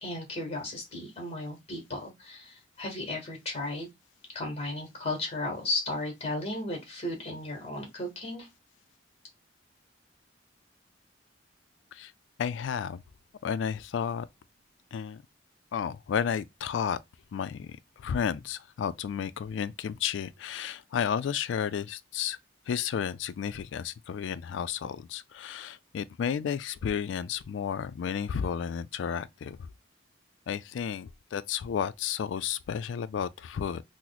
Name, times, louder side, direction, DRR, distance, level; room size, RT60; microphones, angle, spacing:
voice 1, 0.0-3.9 4.3-8.5, left 2 dB, 35° left, 1.1 m, -35 dB
voice 2, 12.4-13.0 13.4-14.3 14.9-15.2 15.7-17.0 17.3-22.4 22.7-29.6 30.5-33.8, left 7 dB, 75° left, 0.3 m, -32 dB
3.0 x 2.0 x 3.8 m
head